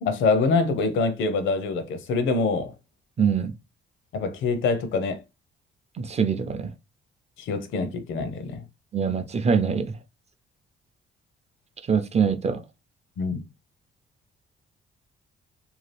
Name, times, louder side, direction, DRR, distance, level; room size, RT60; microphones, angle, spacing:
voice 1, 0.0-2.7 4.1-5.2 7.4-8.6 13.2-13.4, left 4 dB, 75° left, 0.7 m, -25 dB
voice 2, 3.2-3.5 6.0-6.7 8.9-10.0 11.9-12.6, right 6 dB, 35° right, 0.5 m, -23 dB
2.8 x 2.3 x 3.2 m
cardioid pair, 90°, 20 cm